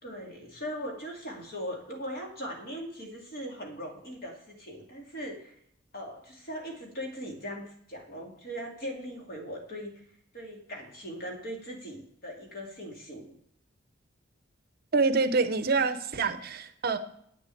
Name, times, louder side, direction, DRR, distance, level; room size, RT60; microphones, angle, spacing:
voice 1, 0.0-5.5 5.9-10.0 10.3-13.3, equal, 50° left, 1 dB, 2.5 m, -39 dB
voice 2, 14.9-17.0, right 4 dB, 50° right, 10 dB, 0.7 m, -26 dB
8.5 x 6.6 x 8.3 m, 0.68 s
head